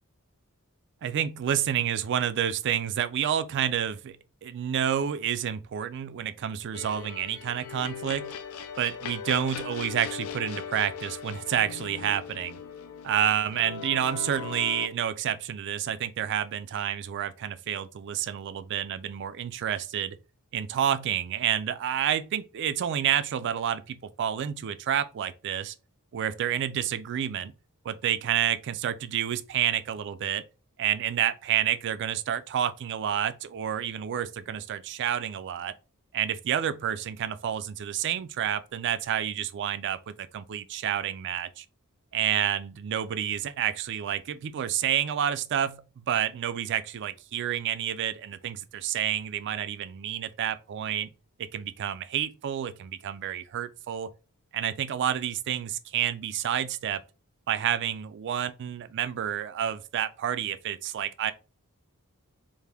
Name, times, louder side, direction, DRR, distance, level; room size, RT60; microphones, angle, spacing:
voice 1, 1.0-8.3 8.8-12.6 13.0-20.2 20.5-25.7 26.1-27.5 27.8-30.4 30.8-35.7 36.1-41.7 42.1-51.1 51.4-54.1 54.5-57.0 57.5-61.3, right 9 dB, 55° right, 0.3 m, -29 dB
sound 1, 6.7-14.9, left 7 dB, 70° left, 0.5 m, -39 dB
3.5 x 2.5 x 3.3 m
head